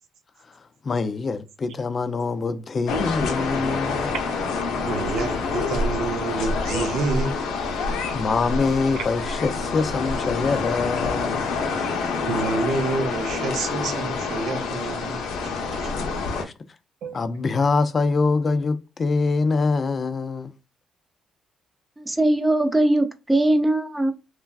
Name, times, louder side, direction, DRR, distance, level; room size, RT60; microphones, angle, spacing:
voice 1, 0.8-4.1 8.1-11.6 16.4-16.5 17.1-20.5, left 4 dB, 40° left, 0.4 m, -24 dB
sound 1, 2.9-16.4, left 4 dB, 85° left, 0.6 m, -27 dB
voice 2, 4.8-7.5 9.0-9.1 10.2-10.4 12.2-15.9 17.0-17.2, right 3 dB, 80° right, 0.7 m, -28 dB
voice 3, 22.0-24.1, right 1 dB, 15° right, 0.5 m, -20 dB
3.1 x 2.3 x 2.3 m
cardioid pair, 90°, 0 cm